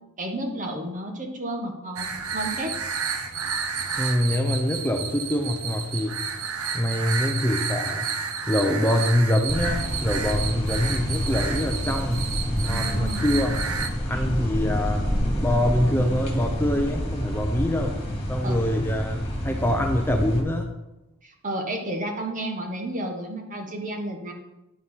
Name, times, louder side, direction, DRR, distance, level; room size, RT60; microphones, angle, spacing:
voice 1, 0.2-2.1 2.3-2.7 12.7-13.3 14.1-14.2 18.4-18.6 21.2-24.3, right 1 dB, 35° right, 3 dB, 1.5 m, -32 dB
sound 1, 2.0-13.9, right 6 dB, 85° right, 0.9 m, -31 dB
voice 2, 4.0-6.1 6.7-8.1 8.5-13.6 14.0-15.1 15.4-20.7, left 1 dB, 10° left, 3 dB, 0.7 m, -25 dB
sound 2, 9.5-20.4, equal, 30° left, 2.0 m, -28 dB
9.7 x 5.6 x 5.7 m, 0.97 s
head